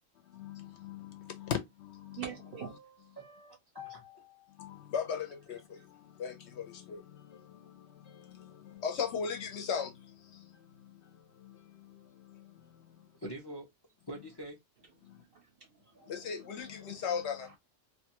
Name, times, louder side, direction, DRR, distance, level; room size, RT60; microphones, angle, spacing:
voice 1, 0.4-1.6 2.0-2.2 4.6-5.6 6.2-7.0 8.8-9.9 16.1-17.5, left 7 dB, 65° left, 0.8 m, -36 dB
voice 2, 2.1-2.8 5.8-5.9 15.0-17.6, right 8 dB, 60° right, 0.7 m, -47 dB
voice 3, 3.2-4.8 13.1-13.7 14.1-14.6, equal, 30° left, 0.4 m, -45 dB
2.5 x 2.3 x 2.8 m
omnidirectional pair, 1.3 m